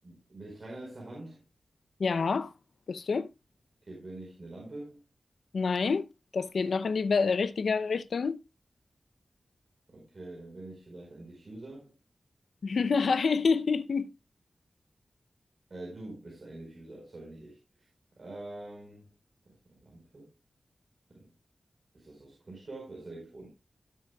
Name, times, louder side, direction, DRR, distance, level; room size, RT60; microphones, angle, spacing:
voice 1, 0.0-1.4 3.8-5.0 9.9-11.9 15.7-17.6 18.2-19.1 19.5-20.3 21.1-21.3 21.9-23.5, right 2 dB, 50° right, 4.8 m, -45 dB
voice 2, 2.0-2.5 2.9-3.3 5.5-8.4 12.6-14.1, left 5 dB, 80° left, 0.6 m, -27 dB
17.0 x 7.5 x 2.3 m
wide cardioid pair, 70°, 0 cm